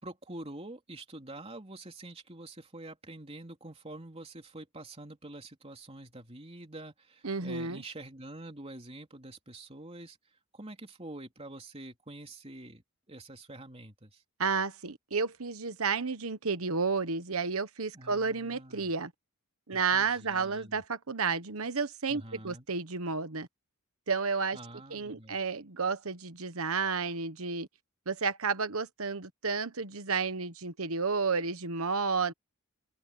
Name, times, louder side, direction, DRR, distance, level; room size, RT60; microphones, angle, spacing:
voice 1, 0.0-10.2 10.5-14.2 17.9-18.9 19.7-20.8 22.1-22.7 24.5-25.4, right 2 dB, 25° right, 3.3 m, -46 dB
voice 2, 7.2-7.8 14.4-19.1 19.7-23.5 24.1-24.6 24.9-27.7 28.1-32.3, right 5 dB, 70° right, 1.2 m, -31 dB
open air
head